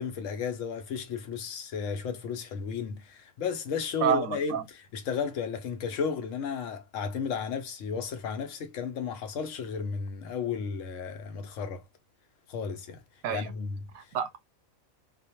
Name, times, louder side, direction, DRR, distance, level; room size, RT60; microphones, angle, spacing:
voice 1, 0.0-11.8 12.5-13.0 13.3-13.9, left 6 dB, 70° left, 0.9 m, -33 dB
voice 2, 4.0-4.7 13.2-13.5 13.9-14.4, right 9 dB, 85° right, 1.0 m, -29 dB
2.4 x 2.0 x 2.8 m
omnidirectional pair, 1.4 m